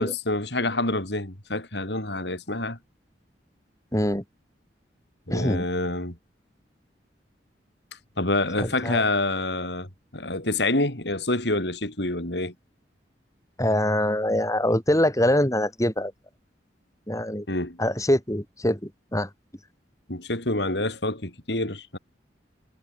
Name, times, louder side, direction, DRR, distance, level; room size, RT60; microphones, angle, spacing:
voice 1, 0.0-2.8 5.3-6.2 8.2-9.9 10.1-12.5 17.5-17.8 20.1-22.0, left 2 dB, 70° left, 6.0 m, -27 dB
voice 2, 3.9-4.2 5.3-5.6 8.6-9.0 13.6-16.1 17.1-17.5 17.8-19.3, left 1 dB, 20° left, 7.0 m, -24 dB
head